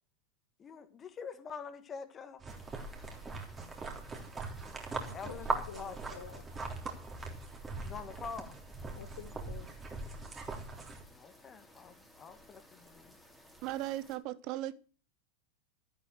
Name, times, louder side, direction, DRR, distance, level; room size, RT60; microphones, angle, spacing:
voice 1, 0.6-2.4 5.1-6.1 7.8-8.6 11.1-13.2, left 6 dB, 25° left, 2.0 m, -46 dB
sound 1, 2.4-11.0, right 3 dB, 15° right, 3.5 m, -41 dB
sound 2, 2.5-14.2, equal, ahead, 3.1 m, -58 dB
voice 2, 5.0-6.5 9.0-9.7, left 8 dB, 55° left, 1.5 m, -49 dB
voice 3, 13.6-14.7, right 14 dB, 40° right, 1.0 m, -37 dB
13.5 x 8.8 x 6.5 m
figure-of-eight pair, 90°, 0 cm